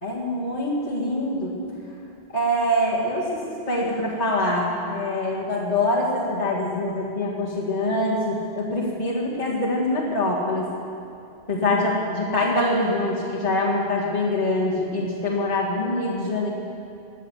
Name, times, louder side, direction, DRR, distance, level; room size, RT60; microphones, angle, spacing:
voice 1, 0.0-1.7 2.3-3.4 3.7-10.7 11.5-16.5, left 1 dB, 35° left, -8 dB, 2.1 m, -24 dB
15.0 x 9.9 x 8.1 m, 2.6 s
omnidirectional pair, 1.1 m